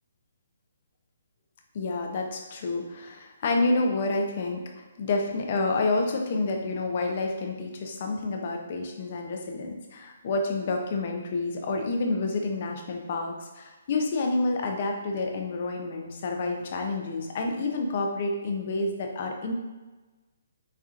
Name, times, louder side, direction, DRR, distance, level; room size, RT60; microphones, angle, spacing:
voice 1, 1.7-19.5, left 3 dB, 30° left, 3 dB, 0.4 m, -29 dB
4.2 x 2.5 x 2.4 m, 1.2 s
hypercardioid pair, 180°, 0 cm